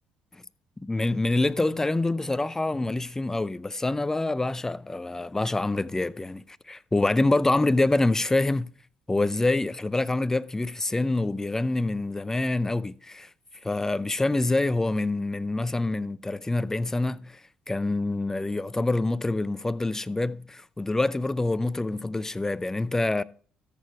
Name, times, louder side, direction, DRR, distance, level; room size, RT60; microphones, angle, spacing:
voice 1, 0.8-8.7 9.1-13.3 13.6-17.4 17.7-23.2, left 2 dB, 15° left, 0.5 m, -26 dB
13.5 x 6.5 x 4.7 m
supercardioid pair, 60°, 3 cm